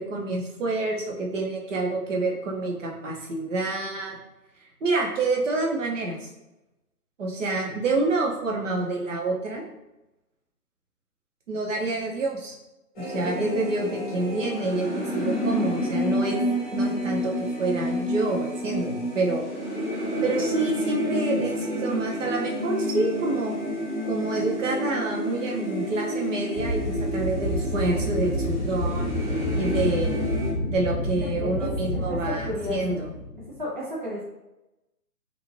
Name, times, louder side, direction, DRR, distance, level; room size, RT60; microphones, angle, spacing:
voice 1, 0.0-4.2 4.8-6.2 7.2-9.6 11.5-12.5 13.0-16.4 16.7-19.5 20.2-23.6 24.1-29.0 29.5-30.2 30.7-33.1, right 2 dB, 50° right, -1 dB, 0.8 m, -27 dB
sound 1, 13.0-30.5, equal, 30° left, 0.9 m, -29 dB
sound 2, 26.6-33.6, left 1 dB, 90° left, 0.6 m, -29 dB
voice 2, 31.2-32.8 33.6-34.2, left 1 dB, 35° right, -6 dB, 0.4 m, -33 dB
2.6 x 2.4 x 3.0 m, 0.95 s
figure-of-eight pair, 140°, 47 cm